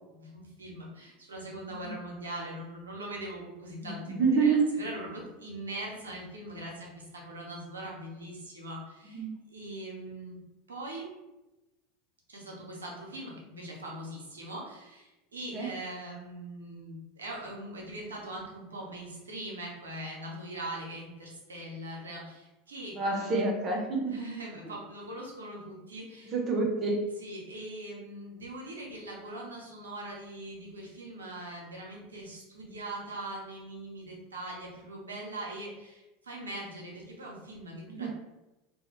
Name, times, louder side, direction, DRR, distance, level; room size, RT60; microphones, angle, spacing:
voice 1, 0.1-9.2 9.5-10.4 10.7-11.1 12.3-23.4 24.1-26.3 27.2-38.1, right 1 dB, 90° right, -2 dB, 0.6 m, -41 dB
voice 2, 3.8-4.7 9.1-9.3 15.5-15.7 23.0-24.1 26.2-27.0 37.9-38.1, right 4 dB, 40° right, 1 dB, 0.6 m, -27 dB
2.2 x 2.1 x 3.0 m, 1.0 s
hypercardioid pair, 85°, 0 cm